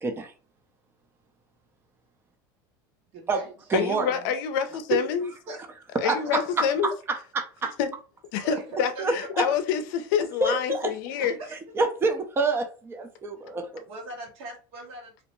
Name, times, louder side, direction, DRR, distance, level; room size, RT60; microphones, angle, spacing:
voice 1, 0.0-0.3 3.3-3.4 3.7-4.1 4.9-5.0 6.0-6.4 7.1-7.7 9.0-9.4 10.4-10.9 11.8-13.8, right 3 dB, 20° right, 0.5 m, -27 dB
voice 2, 3.1-3.5 4.1-4.3 5.5-5.6 6.6-6.7 8.5-8.6 8.9-9.3 11.2-11.5 13.9-15.2, right 2 dB, 60° right, 1.3 m, -40 dB
voice 3, 3.7-5.3 6.0-6.9 7.8-7.9 8.3-11.4, left 8 dB, 75° left, 0.5 m, -27 dB
2.7 x 2.1 x 3.0 m
supercardioid pair, 100°, 11 cm